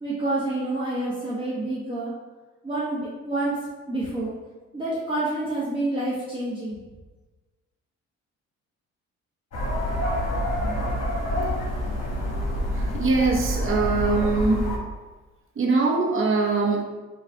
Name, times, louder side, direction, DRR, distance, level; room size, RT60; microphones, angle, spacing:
voice 1, 0.0-2.1 2.6-3.6 3.9-4.3 4.7-6.8, right 2 dB, 15° right, -8 dB, 0.9 m, -28 dB
sound 1, 9.5-14.8, equal, 55° left, 1.2 m, -27 dB
voice 2, 12.8-14.7 15.6-16.8, right 3 dB, 45° right, 0 dB, 0.9 m, -22 dB
3.7 x 2.3 x 4.4 m, 1.3 s
cardioid pair, 90°, 30 cm